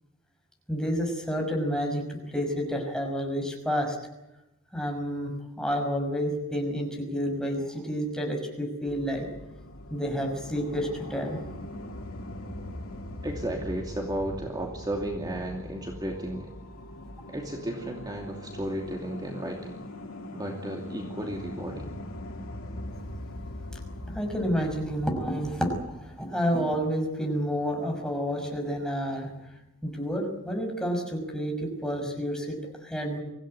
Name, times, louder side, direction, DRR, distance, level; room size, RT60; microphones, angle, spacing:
voice 1, 0.7-4.0 4.7-5.3 5.6-9.3 9.9-11.5 23.7-23.8 24.1-29.3 29.8-33.2, equal, 5° left, 1 dB, 5.7 m, -30 dB
sound 1, 8.9-26.0, left 1 dB, 75° left, 2.7 m, -41 dB
voice 2, 13.2-16.5 17.3-19.8 20.3-21.8, right 1 dB, 20° right, 1 dB, 2.7 m, -34 dB
25.0 x 16.0 x 9.9 m, 0.93 s
head